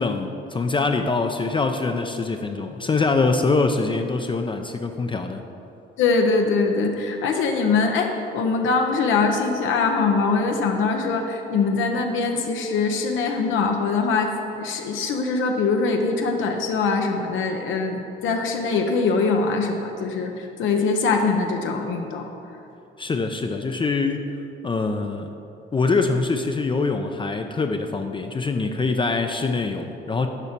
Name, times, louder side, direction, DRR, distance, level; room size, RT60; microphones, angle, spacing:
voice 1, 0.0-5.4 23.0-24.2 24.6-25.3 25.7-30.3, left 3 dB, 25° left, 5 dB, 0.4 m, -24 dB
voice 2, 6.0-14.3 14.6-20.3 20.6-22.3, left 4 dB, 80° left, 3 dB, 0.7 m, -22 dB
6.9 x 4.8 x 5.8 m, 2.7 s
cardioid pair, 90°, 20 cm